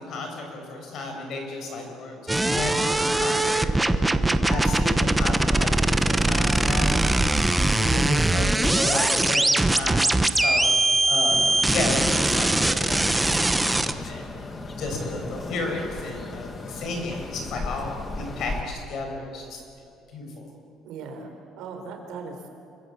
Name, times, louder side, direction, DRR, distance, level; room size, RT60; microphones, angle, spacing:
voice 1, 0.0-4.0 4.4-7.4 7.8-10.7 11.1-11.4 11.7-14.3 14.8-20.5, left 2 dB, 45° left, 3 dB, 6.1 m, -33 dB
sound 1, 2.3-13.9, right 2 dB, 5° right, 0.8 m, -21 dB
voice 2, 4.0-4.5 20.8-22.5, right 4 dB, 65° right, 4 dB, 4.4 m, -38 dB
sound 2, 11.3-18.6, left 3 dB, 20° left, 1.7 m, -36 dB
26.5 x 24.0 x 8.4 m, 2.4 s
cardioid pair, 180°, 0 cm